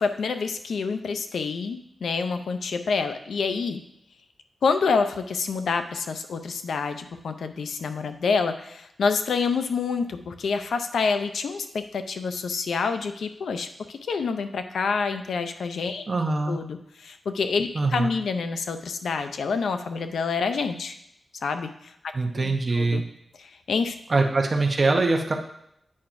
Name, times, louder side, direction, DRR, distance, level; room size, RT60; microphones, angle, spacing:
voice 1, 0.0-3.8 4.6-16.1 16.5-21.0 21.4-21.9 22.3-23.0 23.4-23.9, left 5 dB, 90° left, 8 dB, 0.5 m, -27 dB
voice 2, 16.1-16.6 17.7-18.1 22.1-23.0 24.1-25.3, right 3 dB, 40° right, 2 dB, 0.9 m, -23 dB
8.5 x 5.8 x 2.6 m, 0.76 s
wide cardioid pair, 90°, 0 cm